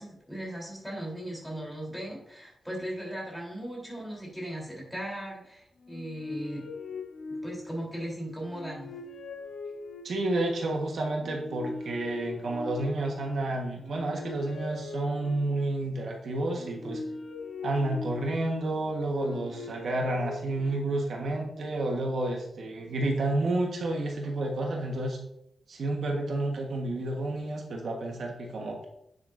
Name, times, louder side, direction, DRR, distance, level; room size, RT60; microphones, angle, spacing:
voice 1, 0.0-6.7 7.4-8.9, right 1 dB, ahead, -4 dB, 3.6 m, -38 dB
sound 1, 5.8-7.9 8.4-10.4 11.1-13.3 13.7-15.8 16.5-18.6 19.1-21.1, left 3 dB, 85° left, 1.0 m, -41 dB
voice 2, 10.0-17.0 17.6-25.2 25.7-28.8, right 2 dB, 70° right, 1 dB, 1.4 m, -30 dB
9.7 x 8.0 x 2.6 m, 0.79 s
wide cardioid pair, 140°, 0 cm